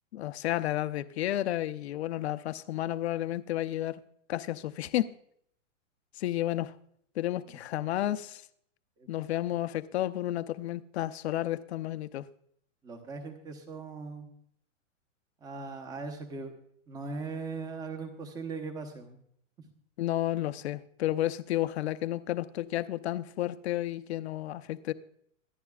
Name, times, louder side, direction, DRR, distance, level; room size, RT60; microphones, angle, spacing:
voice 1, 0.1-4.0 4.3-5.1 6.2-6.7 7.2-8.4 9.1-12.3 20.0-24.9, left 14 dB, 55° left, 0.8 m, -32 dB
voice 2, 12.8-14.3 15.4-16.6 16.9-19.2 19.6-19.7, right 4 dB, 10° right, 0.9 m, -39 dB
25.0 x 10.5 x 2.4 m
hypercardioid pair, 165°, 38 cm